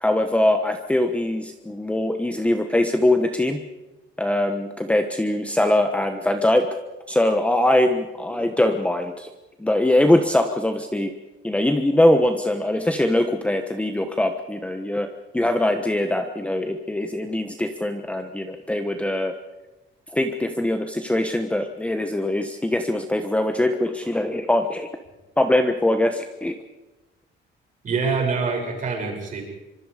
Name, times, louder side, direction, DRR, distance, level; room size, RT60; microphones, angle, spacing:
voice 1, 0.0-3.6 4.2-6.7 7.1-9.3 9.6-11.1 11.4-15.1 15.3-19.3 20.1-24.9 25.4-26.5, left 1 dB, 5° left, 6 dB, 1.2 m, -22 dB
voice 2, 27.8-29.4, right 4 dB, 40° right, 1 dB, 6.8 m, -25 dB
25.5 x 25.0 x 5.0 m, 1.1 s
cardioid pair, 160°, 20 cm